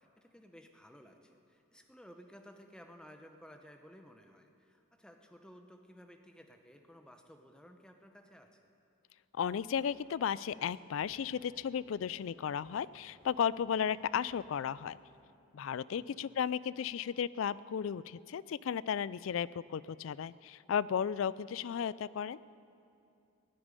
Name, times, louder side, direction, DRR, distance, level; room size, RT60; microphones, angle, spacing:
voice 1, 0.0-8.6 15.9-16.2, equal, 5° left, 5 dB, 0.9 m, -56 dB
voice 2, 9.3-15.0 15.5-22.4, left 8 dB, 75° left, 19 dB, 0.3 m, -34 dB
sound 1, 9.5-15.2, right 1 dB, 80° right, 1.9 m, -65 dB
16.5 x 8.9 x 9.7 m, 2.6 s
head